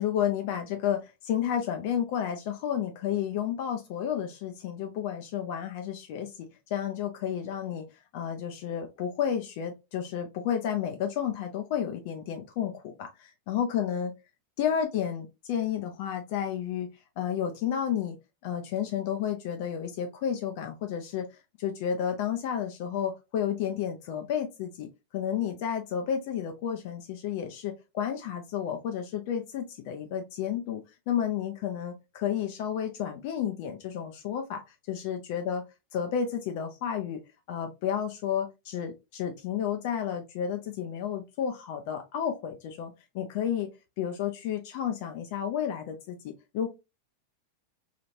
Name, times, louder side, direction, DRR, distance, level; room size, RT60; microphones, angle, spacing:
voice 1, 0.0-7.8 8.1-14.1 14.6-16.9 17.2-18.2 18.4-21.3 21.6-24.9 25.1-34.6 34.9-35.6 35.9-37.2 37.5-43.7 44.0-46.7, left 9 dB, 50° left, 5 dB, 0.4 m, -31 dB
3.0 x 2.4 x 2.7 m, 0.25 s
figure-of-eight pair, 90°, 0 cm